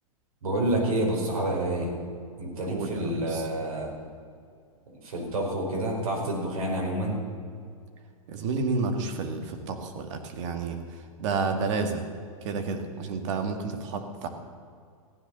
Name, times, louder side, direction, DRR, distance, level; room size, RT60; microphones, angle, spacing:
voice 1, 0.4-1.9 2.4-3.9 4.9-7.2, right 1 dB, 75° right, -1 dB, 4.7 m, -28 dB
voice 2, 2.6-3.5 8.3-12.1 12.4-14.3, right 4 dB, 55° right, 5 dB, 2.1 m, -30 dB
15.0 x 10.5 x 6.9 m, 2.2 s
hypercardioid pair, 120°, 18 cm